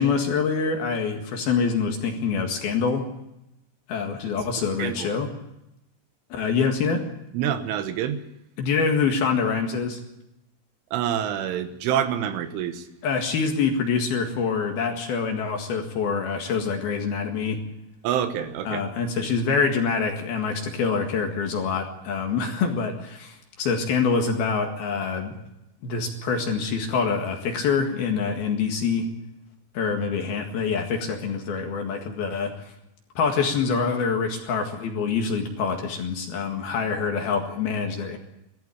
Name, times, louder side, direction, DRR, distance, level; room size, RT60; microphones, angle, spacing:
voice 1, 0.0-3.0 3.9-5.3 6.3-7.1 8.6-10.0 13.0-17.6 18.6-25.3 25.8-29.1 29.7-32.5 33.2-38.2, left 5 dB, 60° left, 3 dB, 3.2 m, -25 dB
voice 2, 7.3-8.2 10.9-12.9 18.0-18.8, right 9 dB, 75° right, 9 dB, 3.5 m, -26 dB
19.0 x 14.5 x 9.8 m, 0.88 s
omnidirectional pair, 5.9 m